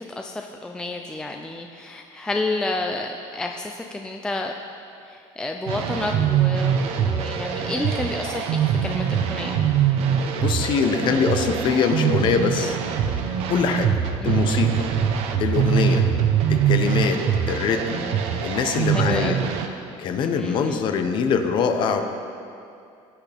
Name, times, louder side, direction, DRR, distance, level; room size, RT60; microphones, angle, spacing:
voice 1, 0.0-4.5 5.1-9.7 14.2-14.4 18.9-19.4 20.2-20.8, left 2 dB, 5° left, 3 dB, 0.4 m, -30 dB
sound 1, 5.7-19.7, right 8 dB, 55° right, 0.8 m, -23 dB
voice 2, 10.4-12.8 13.5-13.9 14.2-14.9 15.4-16.0 16.5-18.0 18.4-19.4 20.0-22.0, left 6 dB, 40° left, 6 dB, 0.9 m, -23 dB
19.5 x 8.5 x 3.5 m, 2.5 s
cardioid pair, 175°, 12 cm